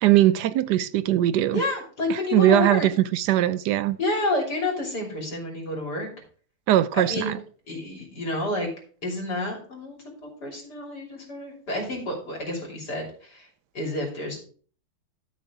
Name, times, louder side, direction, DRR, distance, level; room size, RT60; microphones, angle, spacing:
voice 1, 0.0-1.6 2.1-4.0 6.7-7.3, right 13 dB, 85° right, 1.2 m, -20 dB
voice 2, 1.5-2.9 4.0-6.1 6.9-7.3 7.7-8.7 9.0-13.5 13.7-14.4, left 2 dB, 75° left, 3.5 m, -29 dB
12.0 x 6.2 x 3.6 m
omnidirectional pair, 1.8 m